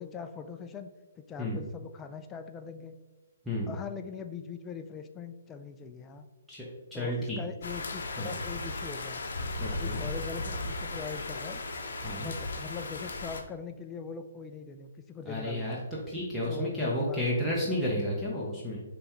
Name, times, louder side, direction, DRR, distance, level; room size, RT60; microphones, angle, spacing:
voice 1, 0.0-2.9 3.7-6.3 6.9-9.2 9.7-11.6 12.1-15.9 16.5-17.2, left 6 dB, 15° left, 7 dB, 0.3 m, -41 dB
voice 2, 6.9-7.4 8.2-8.3 9.6-10.0 12.0-12.3 15.3-15.8 16.1-18.8, left 1 dB, ahead, -7 dB, 0.8 m, -32 dB
sound 1, 7.6-13.4, left 2 dB, 70° left, 0.6 m, -36 dB
5.2 x 3.3 x 3.0 m, 1.2 s
hypercardioid pair, 150°, 0 cm